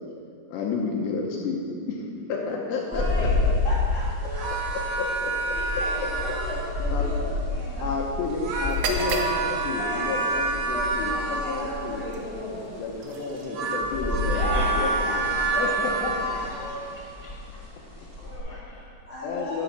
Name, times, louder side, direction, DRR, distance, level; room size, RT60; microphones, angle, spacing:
voice 1, 0.5-1.6 1.9-3.5 5.2-5.3 6.9-7.1 7.8-12.0 12.8-15.2 15.5-16.1 19.2-19.6, left 4 dB, 75° left, -1 dB, 2.8 m, -31 dB
voice 2, 2.8-3.4 3.6-4.5 4.7-4.8 5.5-7.9 9.6-10.2 10.5-12.7 14.3-15.7 16.1-17.0 18.5-18.6 19.1-19.6, left 1 dB, 55° left, -10 dB, 1.4 m, -36 dB
sound 1, 2.9-18.4, left 2 dB, 20° left, 0.5 m, -30 dB
sound 2, 4.2-6.8 8.2-11.9 13.1-16.8, right 3 dB, 60° right, 2.5 m, -29 dB
sound 3, 8.6-16.5, right 4 dB, 90° right, 3.4 m, -38 dB
voice 3, 14.3-15.0 16.2-17.4 18.1-19.0, left 1 dB, 25° right, -8 dB, 1.9 m, -41 dB
13.0 x 6.2 x 5.8 m, 2.3 s
omnidirectional pair, 5.5 m